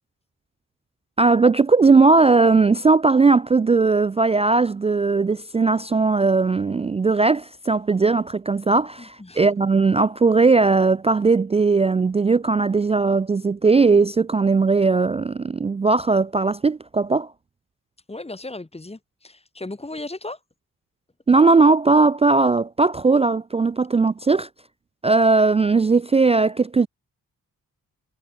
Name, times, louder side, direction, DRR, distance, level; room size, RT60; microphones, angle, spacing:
voice 1, 1.2-17.3 21.3-24.5 25.0-26.9, right 4 dB, 20° right, 0.3 m, -18 dB
voice 2, 18.1-20.4, left 2 dB, 15° left, 3.9 m, -35 dB
cardioid pair, 85°, 34 cm